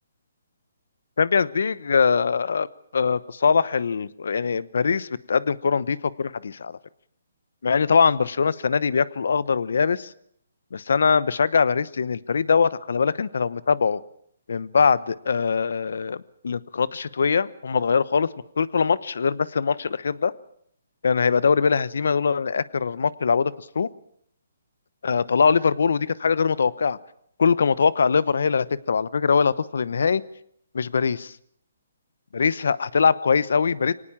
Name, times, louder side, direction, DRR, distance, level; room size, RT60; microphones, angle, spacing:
voice 1, 1.2-2.7 2.9-6.8 7.6-10.1 10.7-14.0 14.5-18.3 18.6-20.3 21.0-23.9 25.0-27.0 27.4-30.2 30.7-31.3 32.3-33.9, left 5 dB, 70° left, 19 dB, 1.0 m, -22 dB
24.0 x 18.5 x 7.4 m, 0.66 s
hypercardioid pair, 150°, 0 cm